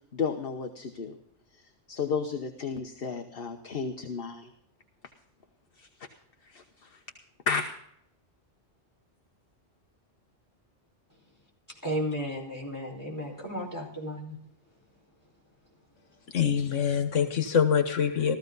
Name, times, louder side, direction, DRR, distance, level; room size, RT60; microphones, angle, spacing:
voice 1, 0.1-1.2 1.5-4.5 5.8-5.9 6.4-7.0 7.5-7.6, left 5 dB, 50° left, 1.2 m, -33 dB
voice 2, 11.7-14.4, equal, 15° left, 4.9 m, -34 dB
voice 3, 16.3-18.4, left 7 dB, 85° left, 1.6 m, -25 dB
15.5 x 14.5 x 4.0 m
omnidirectional pair, 1.2 m